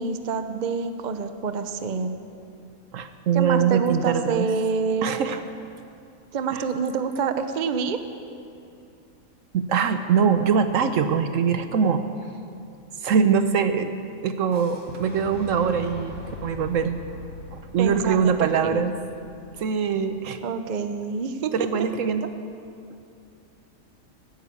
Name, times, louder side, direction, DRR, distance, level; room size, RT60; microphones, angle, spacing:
voice 1, 0.0-2.1 3.3-5.1 6.3-8.0 17.8-18.8 20.4-21.5, right 5 dB, 40° right, 9 dB, 0.7 m, -27 dB
voice 2, 2.9-4.5 5.0-5.4 6.5-6.6 9.5-12.0 13.0-13.9 14.2-17.0 17.5-18.9 19.6-20.4 21.5-22.3, right 6 dB, 65° right, 9 dB, 1.0 m, -23 dB
Fire / Explosion, 14.5-20.4, left 2 dB, 50° left, 4.4 m, -42 dB
15.0 x 9.4 x 8.4 m, 2.5 s
omnidirectional pair, 1.6 m